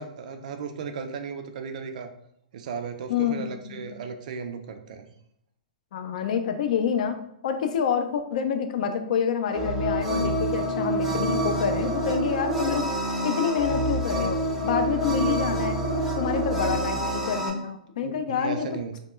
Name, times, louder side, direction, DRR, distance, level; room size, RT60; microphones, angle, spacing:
voice 1, 0.0-2.1 2.5-5.1 16.8-16.9 18.0-19.0, right 5 dB, 60° right, 6 dB, 0.3 m, -36 dB
voice 2, 3.1-4.0 5.9-7.2 7.4-12.9 13.2-15.8 16.2-18.7, left 7 dB, 60° left, 7 dB, 0.4 m, -27 dB
sound 1, 9.5-17.5, right 1 dB, 5° right, 0.5 m, -27 dB
2.2 x 2.1 x 3.0 m, 0.76 s
hypercardioid pair, 140°, 5 cm